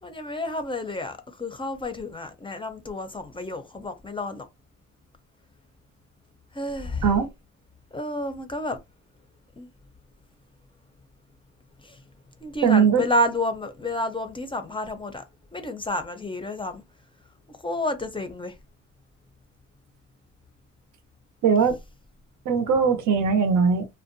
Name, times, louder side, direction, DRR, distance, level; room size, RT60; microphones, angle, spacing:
voice 1, 0.0-4.5 6.5-7.1 7.9-8.8 9.6-9.7 11.8-12.0 12.4-15.2 15.5-16.8 17.5-18.6, left 1 dB, 15° left, 0.5 m, -30 dB
voice 2, 12.6-13.0 21.4-21.8 22.5-23.9, right 6 dB, 75° right, 0.7 m, -20 dB
2.5 x 2.2 x 2.6 m
cardioid pair, 90°, 30 cm